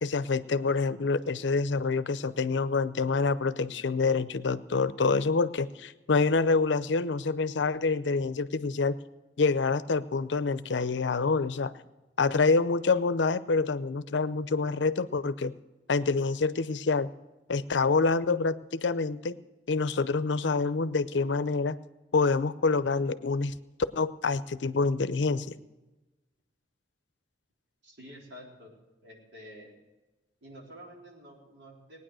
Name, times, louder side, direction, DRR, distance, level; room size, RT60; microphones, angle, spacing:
voice 1, 0.0-8.9 9.4-11.7 12.2-15.5 15.9-17.1 17.5-19.4 19.7-21.8 22.1-23.5 24.0-25.5, left 4 dB, 85° left, 15 dB, 0.6 m, -27 dB
voice 2, 27.8-28.7 29.0-29.7 30.4-32.0, equal, 80° right, -1 dB, 3.8 m, -49 dB
19.0 x 9.6 x 6.3 m, 1.1 s
head